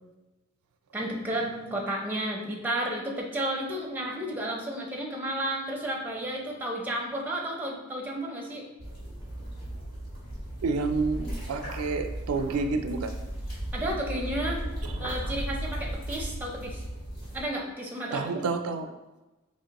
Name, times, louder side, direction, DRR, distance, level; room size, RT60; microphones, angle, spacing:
voice 1, 0.9-8.7 13.7-14.6 15.0-16.8 17.3-18.3, right 1 dB, 10° right, -2 dB, 0.6 m, -32 dB
sound 1, 8.8-17.4, right 1 dB, 45° left, 1.4 m, -36 dB
voice 2, 10.6-13.1 18.1-18.8, right 4 dB, 85° right, 7 dB, 0.4 m, -29 dB
4.3 x 3.1 x 2.9 m, 1.1 s
head